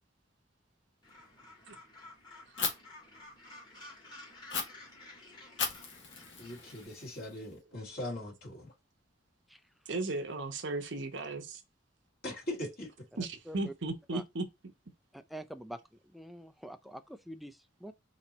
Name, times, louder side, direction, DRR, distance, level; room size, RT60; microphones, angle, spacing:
Gull seagull, 1.0-6.9, left 2 dB, 25° left, 1.6 m, -53 dB
Fire, 2.6-2.7 4.5-4.6 5.6-7.5, left 5 dB, 70° left, 1.3 m, -36 dB
voice 1, 6.4-8.7 12.2-13.1, left 1 dB, 50° left, 2.1 m, -40 dB
voice 2, 9.9-11.6 13.2-14.4, right 2 dB, 70° right, 0.9 m, -36 dB
voice 3, 15.1-17.9, right 1 dB, ahead, 0.3 m, -46 dB
4.3 x 2.9 x 4.0 m
head